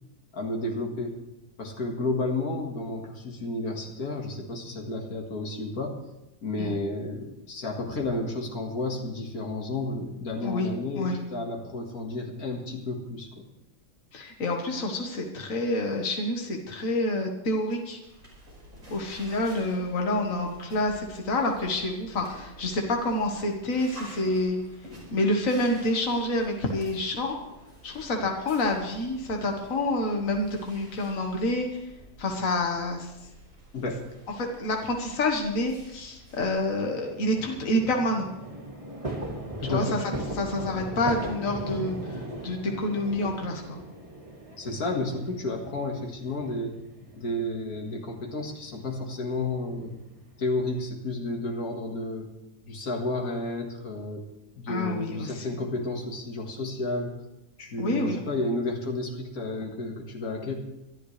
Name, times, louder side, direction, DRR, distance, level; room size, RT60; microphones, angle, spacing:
voice 1, 0.3-1.1 1.6-6.0 6.4-13.5 33.7-34.0 39.6-40.0 44.6-46.8 47.1-49.9 50.4-52.3 52.6-54.3 54.6-57.1 57.6-60.5, left 2 dB, 85° left, 1 dB, 2.4 m, -31 dB
voice 2, 14.1-18.0 18.9-24.6 25.1-27.4 27.8-31.8 32.2-33.1 34.4-38.3 39.6-40.0 40.4-42.1 42.4-43.8 54.7-55.5 57.8-58.2, left 1 dB, 65° left, 2 dB, 1.9 m, -28 dB
sound 1, 18.0-36.5, right 1 dB, 55° right, 5.6 m, -50 dB
sound 2, 36.6-50.9, right 1 dB, 25° right, 1.8 m, -39 dB
25.0 x 11.0 x 3.3 m, 0.92 s
omnidirectional pair, 1.5 m